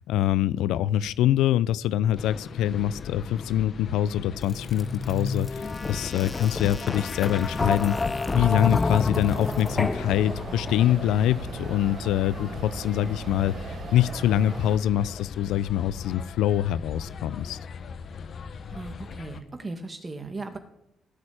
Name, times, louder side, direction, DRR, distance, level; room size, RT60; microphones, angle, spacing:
voice 1, 0.1-7.9 8.3-13.5 13.9-17.6, left 11 dB, 90° left, 18 dB, 0.5 m, -24 dB
sound 1, 2.2-19.4, left 6 dB, 55° left, 1.1 m, -40 dB
sound 2, 4.4-11.1, left 3 dB, 25° left, 0.7 m, -29 dB
sound 3, 9.3-14.8, right 6 dB, 50° right, 1.1 m, -39 dB
voice 2, 18.7-20.6, right 3 dB, 25° right, 6 dB, 2.2 m, -37 dB
16.5 x 6.5 x 8.8 m, 0.79 s
cardioid pair, 90°, 0 cm